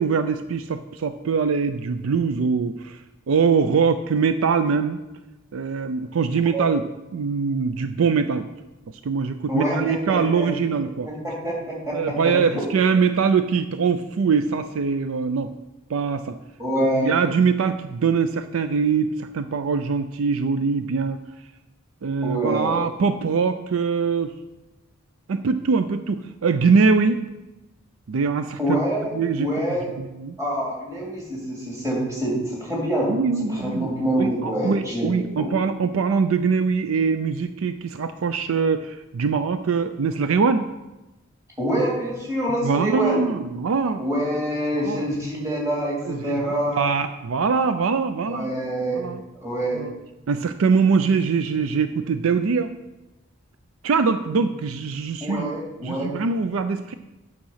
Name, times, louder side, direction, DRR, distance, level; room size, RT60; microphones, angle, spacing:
voice 1, 0.0-3.0 3.3-5.0 5.5-6.8 7.1-8.5 9.0-11.1 11.9-15.5 15.9-16.4 17.0-21.2 22.0-24.3 25.3-27.2 28.1-28.6 29.1-29.5 30.0-30.4 33.1-33.9 34.2-40.7 42.6-44.0 44.8-45.0 46.0-46.4 46.8-48.5 48.9-49.2 49.7-49.9 50.3-52.7 53.8-55.5 55.8-56.9, right 5 dB, 85° right, 10 dB, 0.4 m, -22 dB
voice 2, 9.5-12.6 16.6-17.1 22.2-22.9 28.6-29.9 30.4-33.1 33.4-35.6 41.6-43.2 44.0-46.8 48.3-49.1 49.4-49.8 55.2-56.1, right 1 dB, 15° right, -4 dB, 2.6 m, -26 dB
8.9 x 6.0 x 5.6 m, 1.0 s
head